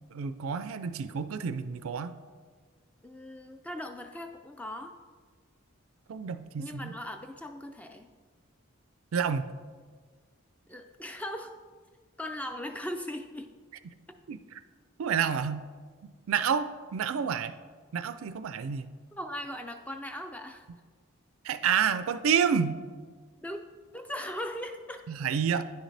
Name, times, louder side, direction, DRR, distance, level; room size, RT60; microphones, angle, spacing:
voice 1, 0.1-2.2 6.1-6.9 9.1-9.4 14.3-14.6 15.0-15.7 16.3-17.6 17.9-18.9 21.4-22.8 25.1-25.6, right 7 dB, 80° right, 12 dB, 0.4 m, -29 dB
voice 2, 3.0-4.9 6.6-8.1 10.7-11.6 12.2-13.5 14.1-14.2 19.1-20.7 23.4-23.6 23.9-25.1, left 1 dB, 5° left, 6 dB, 0.3 m, -39 dB
9.8 x 6.4 x 3.3 m, 1.6 s
head